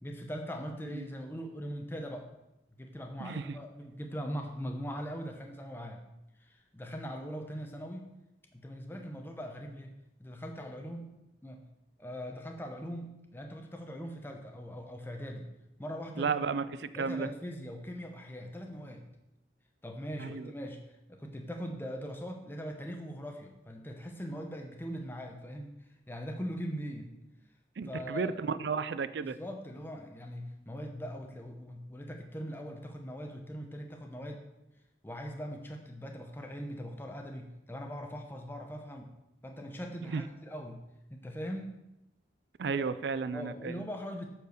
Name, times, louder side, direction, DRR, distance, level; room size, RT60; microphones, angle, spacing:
voice 1, 0.0-2.3 2.7-6.0 6.4-8.1 8.5-9.9 10.2-11.6 12.0-15.5 15.8-16.4 16.9-19.1 19.8-20.8 21.1-25.7 26.1-27.2 27.8-28.4 29.2-34.4 35.0-39.1 39.4-40.8 41.1-41.8 42.7-42.9 43.3-44.3, equal, 10° left, 3 dB, 0.8 m, -41 dB
voice 2, 16.2-16.6 17.0-17.3 20.2-20.5 27.8-29.4 40.1-40.2 42.6-43.7, right 5 dB, 70° right, 14 dB, 0.4 m, -33 dB
8.1 x 4.5 x 6.6 m, 0.91 s
head